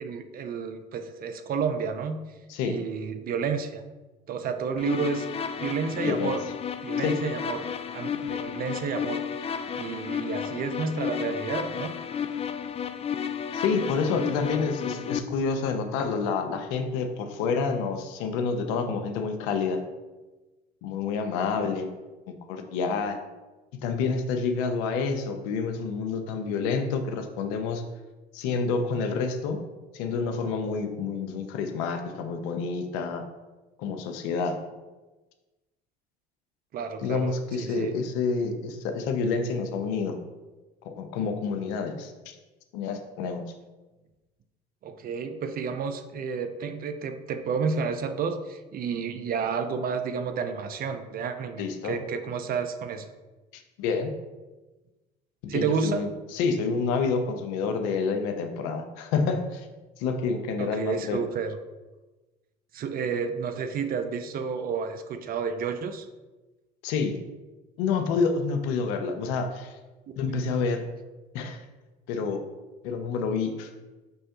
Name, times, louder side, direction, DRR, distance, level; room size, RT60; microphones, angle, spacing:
voice 1, 0.0-2.2 2.6-3.8 4.3-5.3 5.6-6.4 6.8-7.6 7.9-9.2 9.7-11.9 36.7-38.0 44.8-53.1 55.5-56.1 60.6-61.6 62.7-66.1 70.1-70.2, right 6 dB, 45° right, 9 dB, 0.5 m, -31 dB
sound 1, 4.8-15.2, left 7 dB, 30° left, 0.3 m, -32 dB
voice 2, 13.5-19.8 20.8-21.9 22.3-23.2 23.8-27.8 28.3-29.6 29.9-33.2 33.8-34.6 37.0-40.2 40.8-42.4 42.7-43.4 51.6-52.0 53.5-54.1 55.4-59.7 60.0-61.2 66.8-67.2 67.8-69.7 70.2-70.8 71.3-71.6 72.1-72.4 72.8-73.7, left 5 dB, 75° left, 6 dB, 0.6 m, -28 dB
5.4 x 3.1 x 2.9 m, 1.2 s
hypercardioid pair, 65°, 21 cm